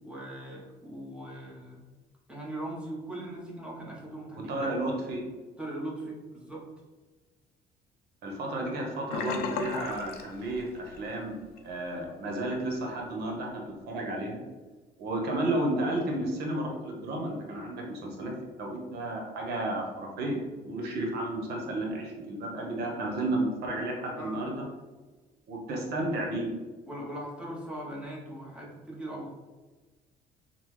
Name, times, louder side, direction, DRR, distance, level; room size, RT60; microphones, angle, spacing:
voice 1, 0.0-1.8 2.3-4.7 5.6-6.6 24.2-24.4 26.9-29.3, right 1 dB, 5° right, -4 dB, 1.0 m, -40 dB
voice 2, 4.5-5.2 8.2-11.4 11.6-14.4 15.0-18.3 18.6-20.4 20.6-24.6 25.5-26.5, right 1 dB, 70° right, 0 dB, 0.9 m, -32 dB
Sink (filling or washing), 9.1-11.1 11.4-11.7 12.1-12.2, left 5 dB, 75° left, 0.4 m, -35 dB
3.5 x 2.2 x 3.1 m, 1.3 s
cardioid pair, 110°, 17 cm